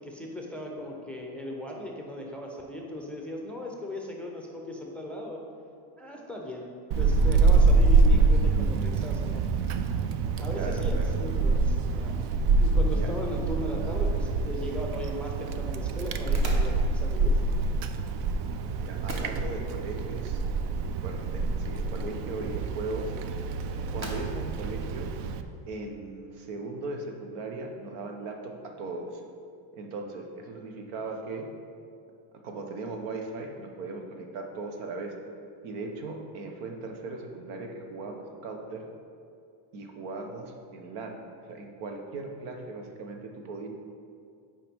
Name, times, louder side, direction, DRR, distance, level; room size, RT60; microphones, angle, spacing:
voice 1, 0.0-5.4 6.0-6.7 7.0-9.4 10.4-12.2 12.6-17.4, left 1 dB, 5° left, -1 dB, 0.5 m, -37 dB
Wind, 6.9-25.4, right 3 dB, 60° right, 0.5 m, -26 dB
voice 2, 10.5-11.1 12.9-13.1 18.8-20.4 21.0-23.1 23.9-25.1 25.7-29.2 29.8-31.5 32.4-35.1 35.6-38.8 39.7-41.2 41.5-43.7, right 3 dB, 85° right, 3 dB, 1.1 m, -38 dB
sound 1, 14.2-25.9, right 1 dB, 35° right, 1.1 m, -47 dB
8.7 x 5.0 x 3.6 m, 2.4 s
cardioid pair, 140°, 50 cm